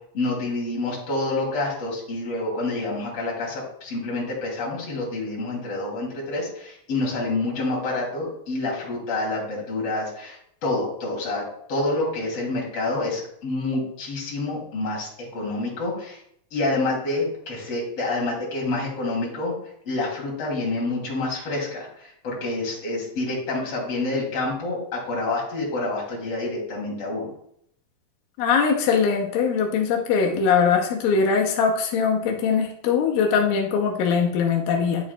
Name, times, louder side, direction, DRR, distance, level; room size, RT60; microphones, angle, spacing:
voice 1, 0.1-10.4 10.6-16.2 16.5-19.5 19.8-27.3, left 2 dB, 45° left, -3 dB, 3.4 m, -28 dB
voice 2, 28.4-35.1, left 6 dB, 90° left, 1 dB, 2.6 m, -21 dB
9.9 x 7.6 x 2.2 m, 0.69 s
omnidirectional pair, 4.0 m